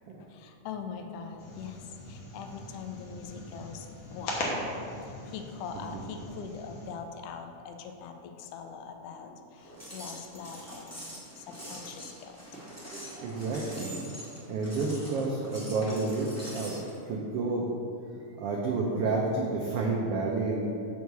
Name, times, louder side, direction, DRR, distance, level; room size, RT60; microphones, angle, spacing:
voice 1, 0.3-1.8 2.1-4.4 5.3-11.1 11.4-12.3, left 6 dB, 85° left, 5 dB, 2.2 m, -42 dB
sound 1, 1.4-6.9, left 1 dB, 60° left, 1.9 m, -39 dB
sound 2, 9.6-16.9, equal, 15° left, 0.6 m, -44 dB
voice 2, 13.2-13.9 14.5-17.7 18.3-20.7, right 3 dB, 90° right, -2 dB, 1.3 m, -30 dB
6.3 x 4.7 x 6.7 m, 2.6 s
omnidirectional pair, 3.6 m